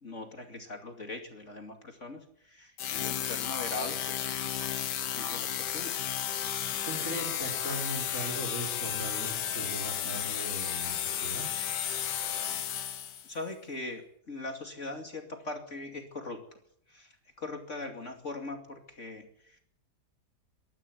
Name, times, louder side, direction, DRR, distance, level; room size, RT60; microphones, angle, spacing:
voice 1, 0.0-4.3 4.8-6.0 13.2-16.4 16.9-19.6, left 2 dB, 45° left, 4 dB, 2.9 m, -41 dB
sound 1, 2.8-13.3, left 9 dB, 90° left, 1.7 m, -33 dB
voice 2, 6.5-11.5, right 1 dB, 50° right, 3 dB, 5.0 m, -39 dB
23.5 x 12.5 x 9.4 m, 0.69 s
omnidirectional pair, 1.8 m